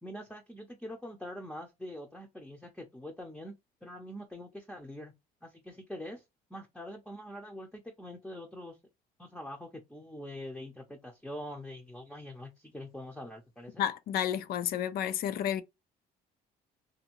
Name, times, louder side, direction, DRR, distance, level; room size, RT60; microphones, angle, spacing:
voice 1, 0.0-5.1 5.4-6.2 6.5-8.8 9.2-13.9, left 1 dB, 5° left, 0.6 m, -44 dB
voice 2, 13.8-15.6, left 10 dB, 65° left, 0.4 m, -31 dB
2.6 x 2.5 x 3.0 m
cardioid pair, 110°, 17 cm